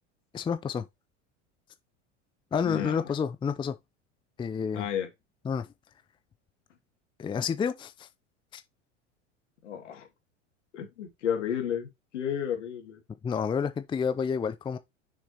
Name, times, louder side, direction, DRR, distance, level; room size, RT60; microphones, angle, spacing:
voice 1, 0.3-0.8 2.5-3.8 4.4-4.9 5.4-5.7 7.2-8.1 8.5-8.6 13.2-14.8, left 6 dB, 15° left, 0.5 m, -29 dB
voice 2, 2.6-3.0 4.7-5.1 9.6-10.1 10.7-13.0, left 9 dB, 80° left, 2.4 m, -32 dB
6.5 x 6.3 x 2.9 m
hypercardioid pair, 85°, 36 cm